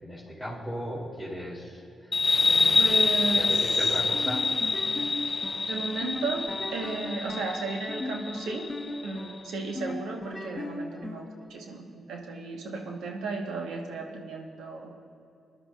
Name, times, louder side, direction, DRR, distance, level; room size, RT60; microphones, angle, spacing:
voice 1, 0.0-4.5, equal, 20° right, -8 dB, 3.1 m, -38 dB
sound 1, 2.1-9.3, left 4 dB, 40° left, 0.4 m, -26 dB
voice 2, 2.8-3.9 5.7-8.7 9.0-14.9, right 3 dB, 85° right, 2 dB, 1.3 m, -34 dB
sound 2, 4.1-11.5, left 1 dB, 20° left, 1.0 m, -38 dB
21.5 x 11.5 x 2.5 m, 2.7 s
supercardioid pair, 55°, 0 cm